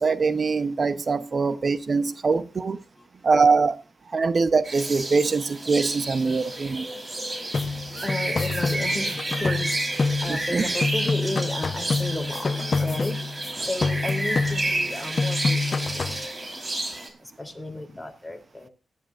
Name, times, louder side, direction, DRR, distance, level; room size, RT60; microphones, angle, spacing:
voice 1, 0.0-2.8 3.2-3.8 4.1-6.9 10.3-10.6, right 4 dB, 55° right, 0.8 m, -23 dB
sound 1, 4.6-17.1, right 2 dB, 40° right, 4.2 m, -31 dB
sound 2, 7.5-10.5 10.8-13.5 13.8-14.9 15.2-16.3, left 4 dB, 50° left, 0.9 m, -27 dB
voice 2, 8.0-13.2 13.5-16.1 17.4-18.7, left 2 dB, 10° left, 3.2 m, -33 dB
18.5 x 12.5 x 2.5 m
cardioid pair, 70°, 0 cm